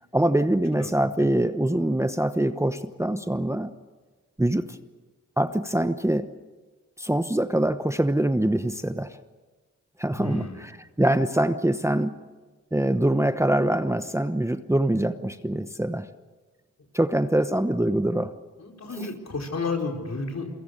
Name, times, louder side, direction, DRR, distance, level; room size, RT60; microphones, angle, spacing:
voice 1, 0.1-3.7 4.4-4.8 5.4-6.3 7.0-9.2 10.0-12.1 12.7-16.1 16.9-18.3 19.0-19.1, right 1 dB, 10° right, 10 dB, 1.0 m, -24 dB
voice 2, 10.1-10.6 18.6-20.5, left 3 dB, 50° left, 2 dB, 4.8 m, -32 dB
28.0 x 22.5 x 6.6 m, 1.3 s
cardioid pair, 50°, 33 cm